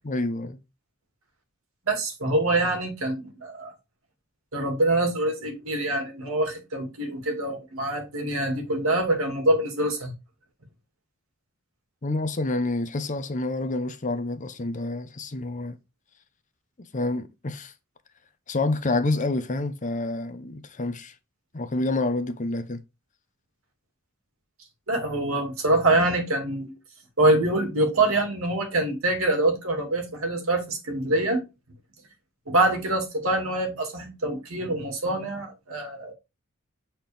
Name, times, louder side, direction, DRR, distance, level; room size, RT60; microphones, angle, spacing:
voice 1, 0.0-0.6 12.0-15.8 16.9-17.7 18.5-21.1 21.5-22.8, left 2 dB, 35° left, 0.8 m, -28 dB
voice 2, 1.9-3.7 4.5-10.1 24.9-26.7 27.2-31.4 32.5-36.1, right 2 dB, 70° right, 2.3 m, -25 dB
7.6 x 4.4 x 3.4 m
head